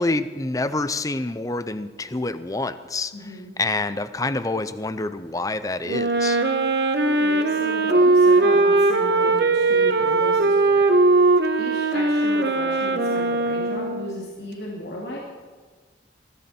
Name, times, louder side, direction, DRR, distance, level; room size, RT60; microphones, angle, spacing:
voice 1, 0.0-3.1 3.6-6.4, left 2 dB, 20° left, 13 dB, 0.6 m, -27 dB
voice 2, 3.1-3.6 7.0-10.9 11.6-15.2, equal, 70° left, -3 dB, 2.7 m, -35 dB
Wind instrument woodwind instrument, 5.9-14.2, right 2 dB, 65° right, 1.1 m, -19 dB
21.0 x 14.0 x 4.4 m, 1.4 s
head